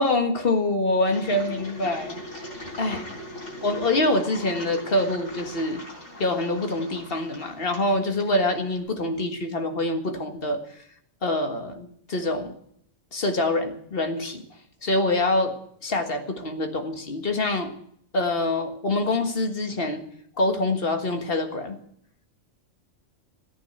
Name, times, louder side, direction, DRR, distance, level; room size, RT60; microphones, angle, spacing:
voice 1, 0.0-2.2 2.6-3.0 3.6-5.8 6.2-10.6 11.2-12.5 13.1-14.4 14.8-15.6 15.8-17.7 18.1-20.0 20.4-21.8, left 2 dB, 50° left, 6 dB, 1.9 m, -25 dB
Engine, 1.0-8.8, left 1 dB, 80° left, 4.2 m, -40 dB
14.5 x 9.2 x 8.1 m, 0.67 s
omnidirectional pair, 1.3 m